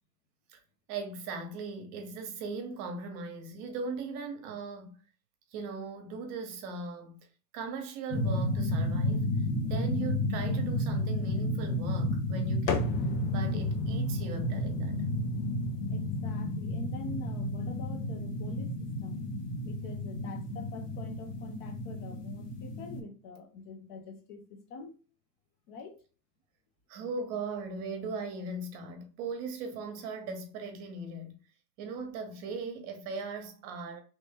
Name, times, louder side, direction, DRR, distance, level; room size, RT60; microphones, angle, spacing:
voice 1, 0.9-5.0 5.5-7.2 7.5-9.3 9.6-12.9 13.3-15.0 26.9-31.3 31.8-34.0, right 3 dB, 40° right, 1.0 m, -39 dB
sound 1, 8.1-23.0, left 1 dB, 70° left, 1.1 m, -32 dB
sound 2, 12.7-20.4, left 5 dB, 90° left, 0.9 m, -41 dB
voice 2, 15.9-19.2 19.6-25.0 25.7-26.0, left 3 dB, 25° left, 0.4 m, -45 dB
3.1 x 2.6 x 3.5 m
supercardioid pair, 135°, 49 cm